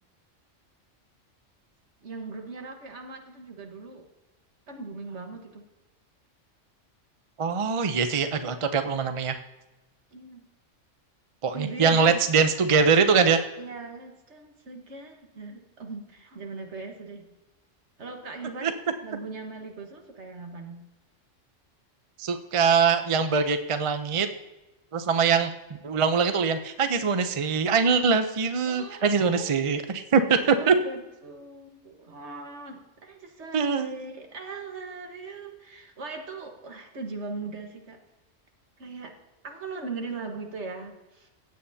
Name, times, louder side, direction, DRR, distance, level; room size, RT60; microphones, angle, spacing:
voice 1, 2.0-4.1 4.7-5.7 10.1-10.4 11.5-12.2 13.6-17.3 18.0-20.8 28.7-29.6 30.3-38.0 38.8-39.1 39.4-41.3, right 3 dB, 60° right, 4 dB, 1.7 m, -39 dB
voice 2, 7.4-9.4 11.4-13.4 18.6-18.7 22.2-24.3 24.9-25.5 25.8-30.7 33.5-33.9, right 5 dB, 35° right, 8 dB, 0.5 m, -23 dB
15.5 x 8.9 x 2.8 m, 1.0 s
omnidirectional pair, 1.3 m